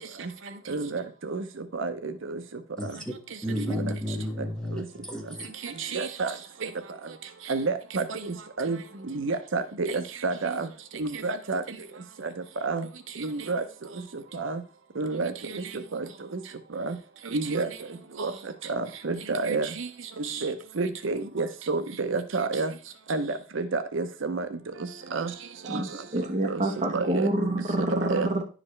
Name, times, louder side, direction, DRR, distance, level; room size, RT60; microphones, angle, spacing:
voice 1, 0.7-1.4 1.8-2.4 3.6-3.8 4.7-4.8 5.8-6.3 7.5-8.2 8.6-8.8 9.1-10.7 11.0-11.6 12.6-12.8 13.2-13.6 14.3-14.6 15.0-15.6 15.9-16.0 16.8-16.9 17.3-17.7 18.2-18.3 18.7-19.9 20.3-22.7 23.1-24.5 25.1-25.3 25.7-25.8 26.5-26.6 26.9-27.3 28.1-28.3, right 3 dB, 65° right, 0.6 m, -29 dB
voice 2, 3.4-5.5, left 1 dB, 5° left, 1.6 m, -32 dB
voice 3, 25.7-28.4, right 1 dB, 35° right, 1.0 m, -27 dB
10.5 x 5.0 x 3.2 m
head